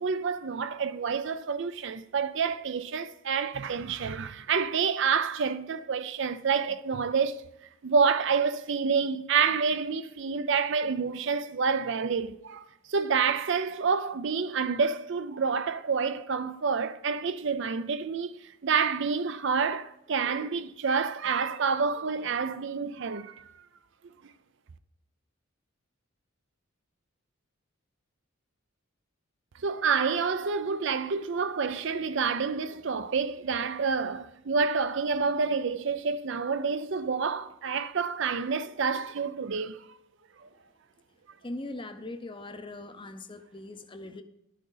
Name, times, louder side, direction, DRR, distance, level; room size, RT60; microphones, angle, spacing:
voice 1, 0.0-7.4 7.8-23.5 29.6-39.9 40.4-40.5, right 5 dB, 55° right, 0.5 m, -28 dB
voice 2, 41.4-44.2, left 2 dB, 25° left, 0.6 m, -40 dB
11.5 x 6.4 x 3.9 m
head